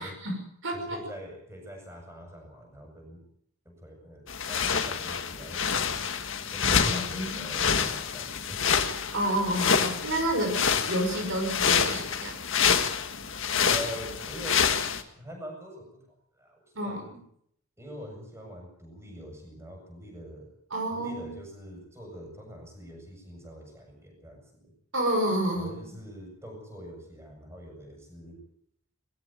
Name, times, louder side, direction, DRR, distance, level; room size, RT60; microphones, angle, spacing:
voice 1, 0.0-1.0 6.6-7.5 9.1-12.4 16.8-17.2 20.7-21.3 24.9-25.7, right 1 dB, 60° right, 2 dB, 6.0 m, -30 dB
voice 2, 0.7-3.2 3.6-6.0 6.5-8.6 13.7-14.8 15.2-16.0 16.3-17.1 17.8-20.5 20.9-24.7 25.5-28.4, equal, 10° right, 2 dB, 7.6 m, -44 dB
sound 1, 4.3-15.0, left 7 dB, 60° left, 1.9 m, -27 dB
21.0 x 15.5 x 9.2 m, 0.71 s
head